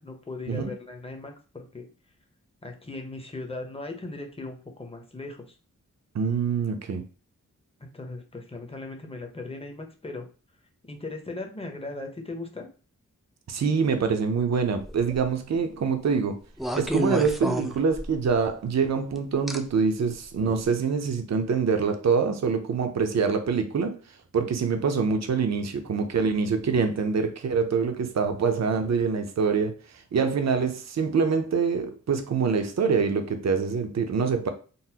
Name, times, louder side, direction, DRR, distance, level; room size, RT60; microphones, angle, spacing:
voice 1, 0.0-1.9 2.6-5.6 7.8-10.3 10.8-12.7, left 2 dB, 20° left, 3 dB, 0.7 m, -38 dB
voice 2, 6.1-7.0 13.5-16.4 16.7-23.9 24.3-29.7 30.1-34.5, right 5 dB, 55° right, 7 dB, 0.6 m, -25 dB
sound 1, 14.8-15.2 16.6-18.3 19.5-19.6 20.4-20.6, equal, ahead, 0.4 m, -30 dB
3.8 x 2.0 x 2.8 m, 0.36 s
wide cardioid pair, 65°, 32 cm